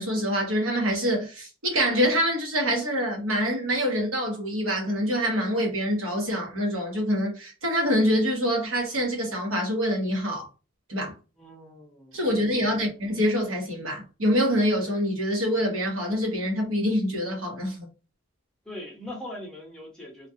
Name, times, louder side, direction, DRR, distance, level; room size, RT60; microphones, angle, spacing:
voice 1, 0.0-10.5 10.9-11.1 12.1-17.9, equal, 80° right, 1.0 m, -25 dB
voice 2, 11.4-12.9 18.6-20.3, left 1 dB, 5° left, 0.8 m, -41 dB
2.4 x 2.3 x 2.6 m
head